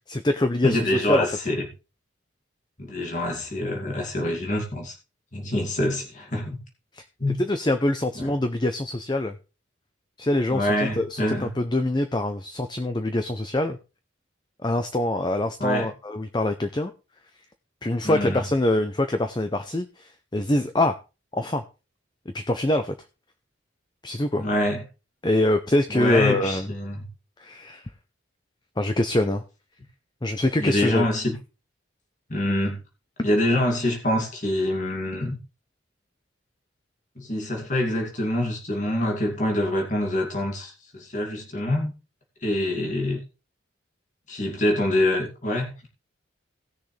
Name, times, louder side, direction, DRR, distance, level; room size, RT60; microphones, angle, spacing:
voice 1, 0.1-1.3 6.9-7.0 7.4-9.4 10.2-13.8 14.6-16.9 17.8-21.0 21.3-21.6 22.3-22.9 24.0-24.5 25.2-26.7 27.4-27.9 28.8-29.4 30.2-31.1, left 1 dB, 20° left, 8 dB, 0.6 m, -24 dB
voice 2, 0.6-1.6 2.8-4.9 5.3-6.6 7.2-7.4 8.2-8.3 10.5-11.5 15.6-15.9 18.0-18.4 24.4-24.8 25.9-27.1 30.6-31.4 32.3-32.8 33.2-35.4 37.2-41.9 42.4-43.2 44.3-45.9, left 1 dB, 35° left, 1 dB, 2.5 m, -25 dB
17.5 x 6.6 x 3.3 m, 0.31 s
head